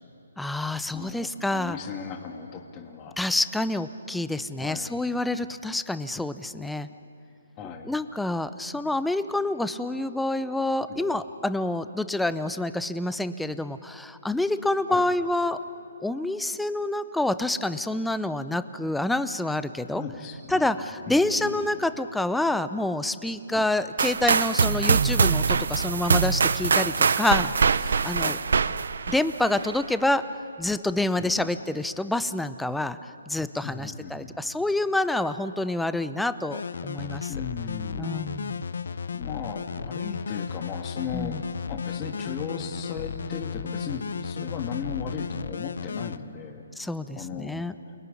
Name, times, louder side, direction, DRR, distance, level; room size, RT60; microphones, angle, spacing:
voice 1, 0.4-1.8 3.2-6.9 7.9-15.6 16.0-20.0 20.5-27.5 27.8-28.4 29.1-30.2 30.6-33.0 33.3-37.3 38.0-38.6 41.1-41.4 46.8-47.7, left 2 dB, 5° left, 12 dB, 0.6 m, -27 dB
voice 2, 0.9-3.2 4.6-5.0 7.6-8.0 10.9-11.2 14.9-15.1 19.9-21.8 23.5-23.7 28.2-28.4 31.2-31.5 33.6-34.4 37.3-38.1 39.1-41.4 41.7-46.6 47.1-47.9, left 6 dB, 20° left, 3 dB, 1.7 m, -37 dB
sound 1, 24.0-29.8, right 5 dB, 70° right, 0.8 m, -23 dB
sound 2, 36.5-46.2, left 6 dB, 70° left, 0.8 m, -34 dB
29.0 x 21.0 x 9.9 m, 2.9 s
hypercardioid pair, 155°, 0 cm